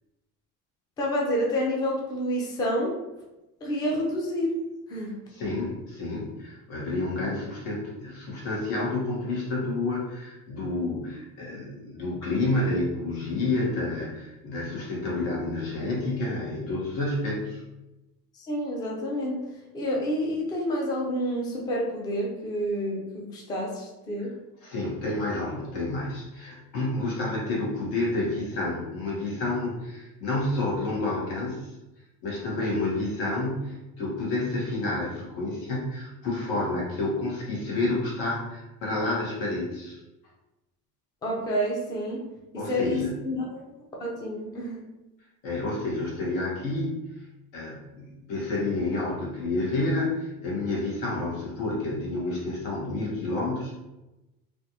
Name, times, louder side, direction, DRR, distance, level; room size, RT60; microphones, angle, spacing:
voice 1, 1.0-2.9 3.6-4.6 4.9-5.1 18.3-19.4 19.7-24.3 41.2-42.2 42.5-43.6 44.0-44.8, equal, 15° left, -2 dB, 0.3 m, -29 dB
voice 2, 5.3-17.6 24.6-31.7 32.2-40.0 42.6-43.1 45.4-47.0 47.5-53.7, left 2 dB, 90° left, -4 dB, 1.4 m, -29 dB
3.3 x 2.4 x 2.7 m, 1.0 s
cardioid pair, 175°, 33 cm